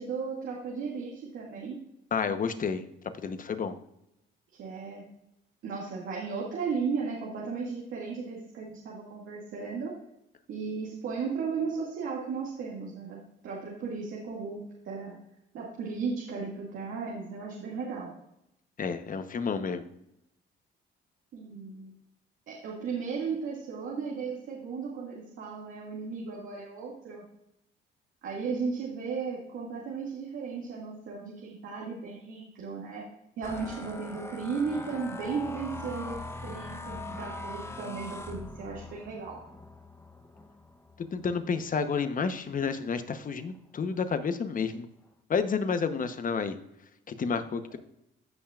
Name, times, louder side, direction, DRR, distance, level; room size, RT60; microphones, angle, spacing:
voice 1, 0.0-1.8 4.6-5.0 5.6-9.9 10.5-13.2 13.4-15.1 15.5-18.1 21.3-21.9 22.5-27.2 28.2-33.0 33.4-36.2 36.4-39.4, right 5 dB, 80° right, -4 dB, 2.2 m, -35 dB
voice 2, 2.1-2.9 3.2-3.8 18.8-19.9 41.0-44.9 45.3-46.6 47.1-47.8, left 5 dB, 45° left, 9 dB, 1.0 m, -30 dB
sound 1, 33.4-42.8 43.3-43.6 43.9-44.4, left 2 dB, 15° left, 0.9 m, -42 dB
15.5 x 5.8 x 2.5 m, 0.81 s
cardioid pair, 90°, 20 cm